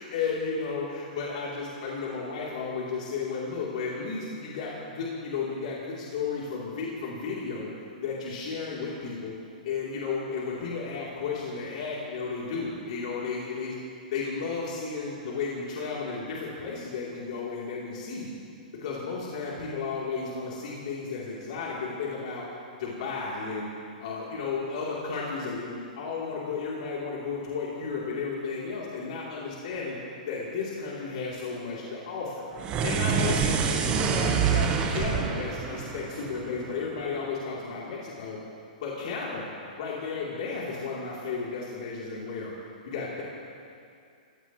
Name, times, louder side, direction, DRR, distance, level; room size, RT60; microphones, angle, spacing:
voice 1, 0.0-9.3 9.6-13.8 14.1-18.3 18.8-23.7 24.0-30.0 30.3-32.4 32.8-38.4 38.8-39.4 39.8-42.5 42.8-43.2, left 4 dB, 55° left, -6 dB, 3.2 m, -33 dB
sound 1, 32.6-37.0, right 6 dB, 20° right, 1.1 m, -27 dB
25.5 x 16.5 x 3.1 m, 2.4 s
hypercardioid pair, 155°, 5 cm